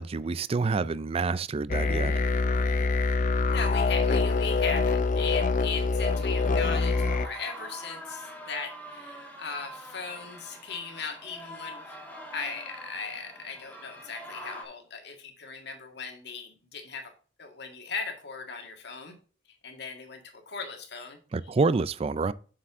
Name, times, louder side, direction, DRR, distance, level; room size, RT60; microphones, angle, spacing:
voice 1, 0.0-2.1 21.3-22.3, right 4 dB, 30° right, 0.4 m, -27 dB
sound 1, 1.7-7.3, left 3 dB, 45° left, 0.6 m, -25 dB
voice 2, 3.5-12.0 12.3-17.1 17.4-19.2 19.6-21.2 21.4-21.5, left 5 dB, 60° left, 1.9 m, -38 dB
sound 2, 6.0-14.6, equal, 10° left, 1.8 m, -44 dB
7.5 x 6.8 x 3.6 m
head